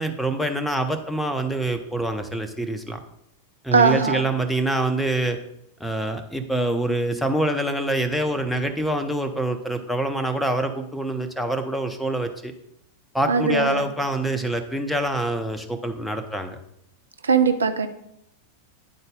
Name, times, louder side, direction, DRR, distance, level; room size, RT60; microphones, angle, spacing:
voice 1, 0.0-3.0 3.6-5.4 5.8-12.5 13.1-16.6, right 1 dB, ahead, 6 dB, 0.6 m, -25 dB
voice 2, 3.7-4.2 13.3-13.8 17.2-17.9, right 5 dB, 70° right, 9 dB, 0.4 m, -20 dB
9.6 x 4.0 x 3.8 m, 0.77 s
figure-of-eight pair, 90°, 0 cm